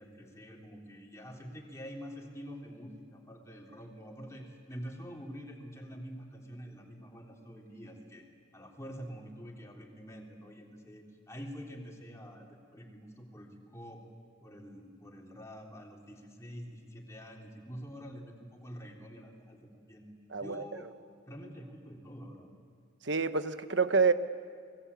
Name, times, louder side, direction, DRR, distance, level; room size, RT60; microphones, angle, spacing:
voice 1, 0.0-8.3 8.5-14.0 14.4-20.1 20.4-20.9 21.3-22.5, equal, 15° left, -1 dB, 3.7 m, -46 dB
voice 2, 20.3-20.6 23.0-24.1, right 4 dB, 65° right, 10 dB, 1.2 m, -27 dB
29.0 x 21.5 x 8.5 m, 2.2 s
head